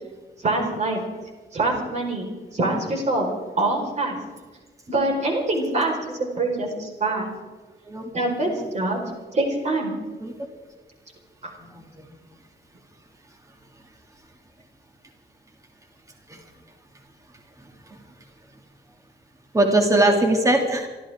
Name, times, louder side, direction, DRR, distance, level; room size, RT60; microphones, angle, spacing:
voice 1, 0.4-1.0 1.5-3.3 3.6-4.2 4.9-7.3 8.1-9.0 9.3-9.9, right 2 dB, 40° right, 0 dB, 4.5 m, -24 dB
voice 2, 11.6-12.0 16.3-16.4 17.9-18.0 19.5-20.9, right 1 dB, 20° right, 2 dB, 2.5 m, -21 dB
27.5 x 13.5 x 3.7 m, 1.3 s
wide cardioid pair, 165°, 18 cm